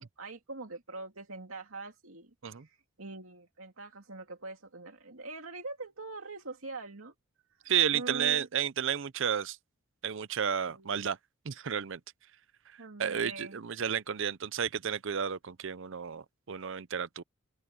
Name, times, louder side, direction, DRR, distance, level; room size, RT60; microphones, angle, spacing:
voice 1, 0.0-2.3 2.6-7.1 7.9-8.5 10.6-11.0 12.8-13.6, right 3 dB, 90° right, 2.5 m, -43 dB
voice 2, 7.7-9.6 10.0-11.2 11.4-12.0 13.0-17.2, right 8 dB, 65° right, 0.6 m, -32 dB
open air
head